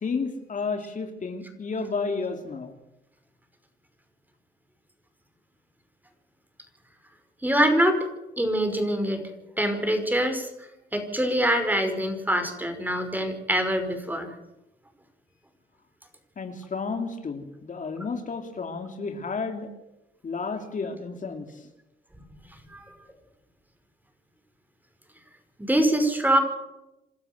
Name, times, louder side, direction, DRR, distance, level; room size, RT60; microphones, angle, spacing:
voice 1, 0.0-2.8 16.4-19.7 20.2-21.6, left 4 dB, 45° left, 5 dB, 2.8 m, -32 dB
voice 2, 7.4-8.1 8.4-9.2 9.6-10.5 10.9-14.3 22.7-22.8 25.7-26.4, right 1 dB, 10° right, 6 dB, 5.3 m, -24 dB
27.5 x 12.5 x 8.2 m, 0.93 s
cardioid pair, 85°, 18 cm